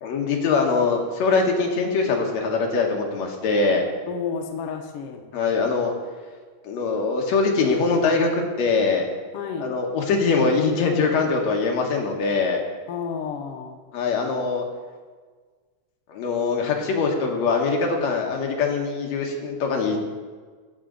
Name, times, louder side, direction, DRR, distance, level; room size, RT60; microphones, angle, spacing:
voice 1, 0.0-3.8 5.3-5.9 6.6-9.1 9.6-12.6 13.9-14.7 16.1-20.0, left 4 dB, 65° left, 1 dB, 2.2 m, -22 dB
voice 2, 4.1-5.3 9.3-9.7 12.9-13.8, left 6 dB, 80° left, 4 dB, 1.3 m, -31 dB
15.0 x 5.2 x 3.8 m, 1.5 s
omnidirectional pair, 3.6 m